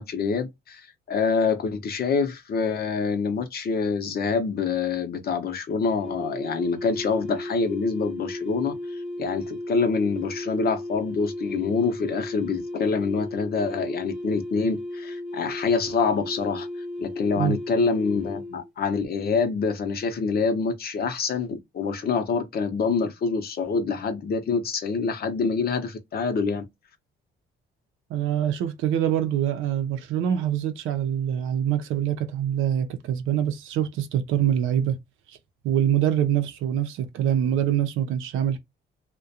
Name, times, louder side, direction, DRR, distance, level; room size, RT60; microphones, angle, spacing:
voice 1, 0.0-16.7 17.0-26.6, left 5 dB, 50° left, 0.6 m, -26 dB
sound 1, 6.0-18.7, left 1 dB, 5° right, 0.7 m, -35 dB
voice 2, 28.1-35.0 35.6-38.6, right 10 dB, 85° right, 0.5 m, -24 dB
2.4 x 2.1 x 2.7 m
cardioid pair, 90°, 20 cm